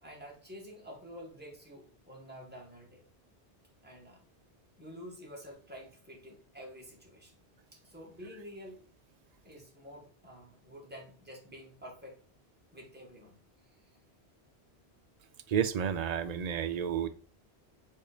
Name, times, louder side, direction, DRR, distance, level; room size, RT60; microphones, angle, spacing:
voice 1, 0.0-3.0 3.8-4.2 4.8-7.4 7.7-8.8 9.4-12.2 12.7-13.3 13.6-13.9, equal, 10° right, -2 dB, 1.8 m, -49 dB
voice 2, 15.5-17.1, right 8 dB, 45° right, 9 dB, 0.6 m, -31 dB
5.5 x 4.2 x 5.0 m, 0.41 s
omnidirectional pair, 1.1 m